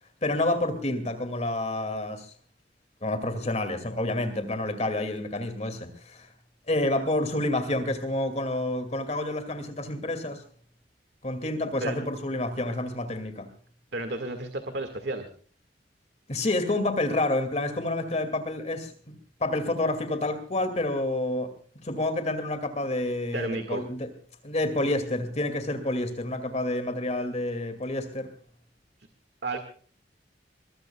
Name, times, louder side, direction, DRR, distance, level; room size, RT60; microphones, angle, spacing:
voice 1, 0.2-2.3 3.0-6.3 6.7-10.4 11.2-13.5 16.3-19.1 19.4-21.5 21.8-24.1 24.4-28.3, left 1 dB, 40° left, 9 dB, 2.3 m, -29 dB
voice 2, 13.9-15.3 23.3-23.8 29.4-29.6, right 2 dB, 70° right, 7 dB, 1.9 m, -32 dB
23.0 x 21.0 x 2.3 m, 0.43 s
head